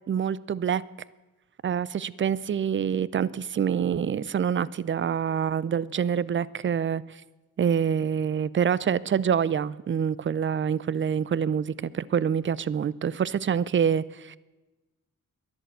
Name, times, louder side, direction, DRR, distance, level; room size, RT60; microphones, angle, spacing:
voice 1, 0.1-0.8 1.6-7.0 7.6-14.4, right 8 dB, 35° right, 21 dB, 0.5 m, -26 dB
11.5 x 11.0 x 7.9 m, 1.2 s
cardioid pair, 75°, 35 cm